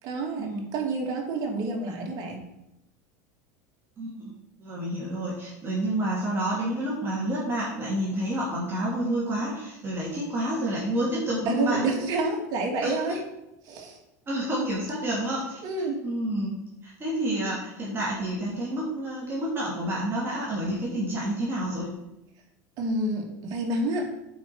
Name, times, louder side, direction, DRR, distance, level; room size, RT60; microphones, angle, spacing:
voice 1, 0.0-2.4 11.5-13.2 13.6-14.0 15.6-16.0 22.8-24.1, right 2 dB, 50° right, 1 dB, 2.5 m, -28 dB
voice 2, 4.0-11.8 12.8-12.9 14.3-15.6 16.0-21.9, right 1 dB, 30° right, -5 dB, 3.1 m, -29 dB
8.3 x 5.3 x 6.1 m, 0.87 s
supercardioid pair, 105°, 8 cm